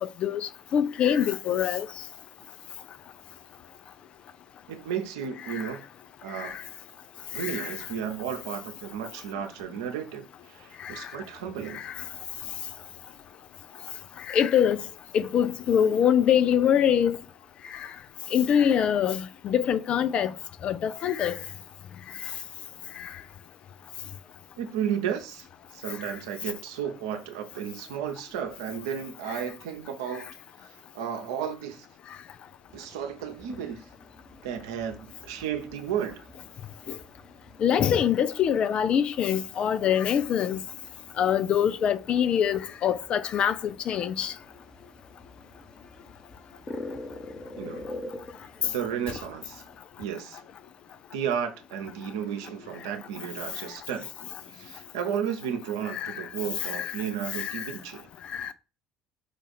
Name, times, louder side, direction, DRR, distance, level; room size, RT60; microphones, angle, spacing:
voice 1, 0.0-1.9 5.5-5.6 6.3-6.6 7.4-7.7 10.8-11.1 11.7-11.9 14.3-14.8 15.1-17.2 17.7-17.9 18.3-20.3 20.6-21.4 23.0-23.1 37.6-40.6 41.2-44.3 55.9-56.3 56.6-57.0 57.3-57.7 58.3-58.5, left 9 dB, 50° left, 0.4 m, -24 dB
voice 2, 4.7-5.9 6.2-6.6 7.3-11.8 24.6-30.3 30.6-31.9 32.7-33.8 34.4-36.3 47.6-47.9 48.6-49.6 50.0-50.4 51.1-54.1 54.5-58.1, right 8 dB, 75° right, 0.7 m, -33 dB
sound 1, 32.7-49.8, left 2 dB, 30° left, 1.1 m, -46 dB
5.3 x 2.5 x 4.0 m
hypercardioid pair, 60°, 2 cm